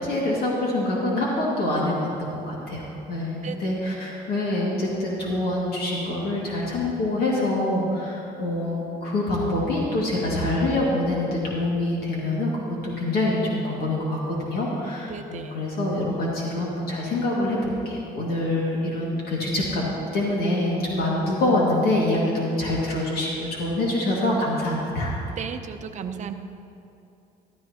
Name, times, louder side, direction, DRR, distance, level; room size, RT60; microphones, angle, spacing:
voice 1, 0.0-25.1, left 1 dB, 65° left, -4 dB, 2.2 m, -25 dB
voice 2, 15.1-15.6 25.4-26.3, right 7 dB, 45° right, 7 dB, 0.7 m, -34 dB
13.5 x 12.5 x 2.9 m, 2.7 s
cardioid pair, 110°, 17 cm